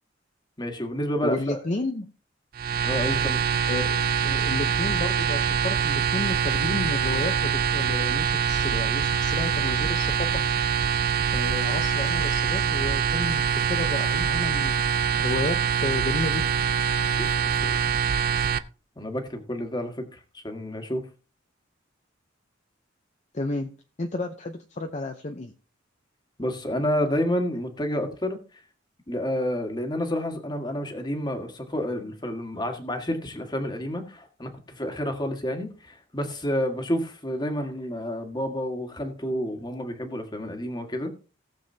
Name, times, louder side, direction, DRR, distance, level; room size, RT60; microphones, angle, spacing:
voice 1, 0.6-1.6 2.8-3.4 17.2-17.8 19.0-21.0 26.4-28.4 29.1-41.1, equal, 20° left, 1.7 m, -29 dB
voice 2, 1.2-2.1 3.7-10.3 11.3-13.4 13.7-14.8 15.2-16.5 23.3-23.7 24.0-25.5, left 2 dB, 40° left, 0.7 m, -32 dB
sound 1, 2.5-18.6, right 7 dB, 50° right, 0.5 m, -24 dB
18.0 x 7.0 x 2.8 m
head